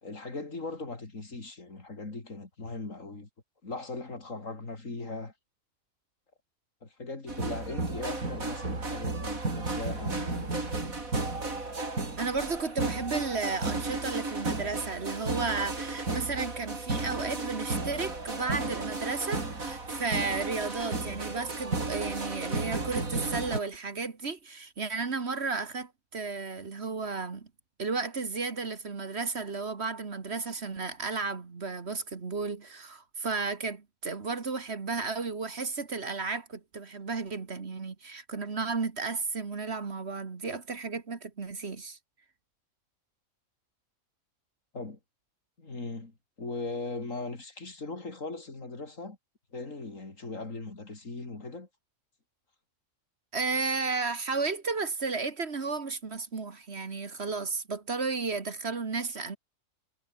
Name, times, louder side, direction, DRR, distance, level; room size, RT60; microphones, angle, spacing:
voice 1, 0.0-3.3 3.6-5.3 6.8-11.0 44.7-45.0 45.6-49.2 49.5-51.7, left 3 dB, 65° left, 4.1 m, -39 dB
sound 1, 7.3-23.6, right 3 dB, 80° right, 4.8 m, -33 dB
voice 2, 12.2-27.5 27.8-42.0 53.3-59.4, right 4 dB, 50° right, 1.9 m, -33 dB
omnidirectional pair, 1.4 m